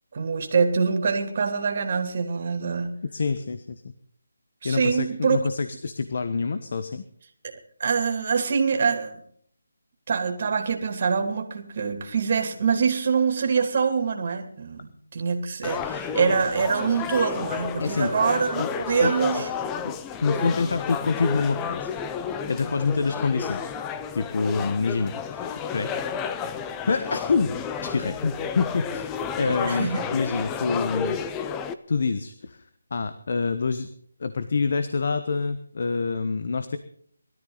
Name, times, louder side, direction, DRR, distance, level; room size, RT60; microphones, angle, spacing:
voice 1, 0.1-2.9 4.6-5.4 7.8-9.2 10.1-19.5 20.3-20.7 29.4-30.1, right 5 dB, 40° right, 5 dB, 2.9 m, -25 dB
voice 2, 3.1-3.9 4.6-7.0 17.8-18.1 18.6-18.7 19.0-19.1 19.8-19.9 20.2-21.9 22.5-23.7 24.1-25.9 26.9-29.1 29.4-31.2 31.9-32.6 32.9-33.9 34.2-36.8, left 4 dB, 50° left, 10 dB, 1.2 m, -26 dB
sound 1, 15.6-31.7, left 6 dB, 10° left, 0.6 m, -32 dB
20.5 x 13.5 x 4.0 m, 0.62 s
figure-of-eight pair, 170°, 0 cm